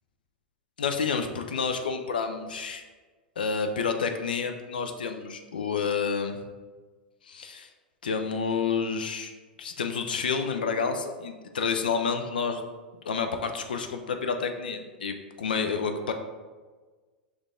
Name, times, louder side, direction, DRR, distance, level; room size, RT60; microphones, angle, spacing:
voice 1, 0.8-2.8 3.4-6.4 7.3-7.7 8.0-9.3 9.6-12.6 13.1-16.1, left 5 dB, 65° left, 6 dB, 0.4 m, -29 dB
6.2 x 2.4 x 3.6 m, 1.4 s
figure-of-eight pair, 90°, 5 cm